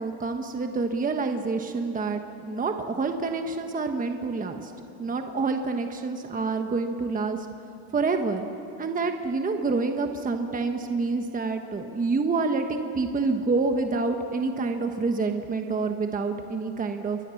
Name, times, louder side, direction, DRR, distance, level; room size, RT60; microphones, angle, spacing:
voice 1, 0.0-4.7 5.0-7.5 7.9-8.5 8.8-17.2, right 4 dB, 20° right, 5 dB, 1.2 m, -27 dB
28.0 x 23.5 x 7.1 m, 2.8 s
cardioid pair, 150°, 45 cm